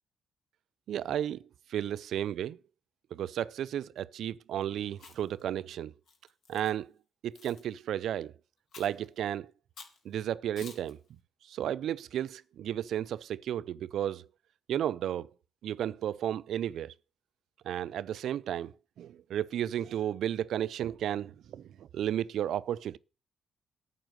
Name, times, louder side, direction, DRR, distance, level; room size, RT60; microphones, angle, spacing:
voice 1, 0.9-1.4 1.7-2.6 3.1-5.9 6.5-6.9 7.2-8.3 8.8-9.5 10.0-11.0 11.5-14.3 14.7-15.3 15.6-16.9 17.6-23.0, right 10 dB, 70° right, 0.5 m, -33 dB
Chewing mastication, 4.9-5.4 6.1-6.7 7.3-7.6 8.7-9.1 9.8-10.0 10.6-10.9, left 4 dB, 65° left, 2.5 m, -50 dB
9.1 x 6.1 x 7.9 m
cardioid pair, 90°, 0 cm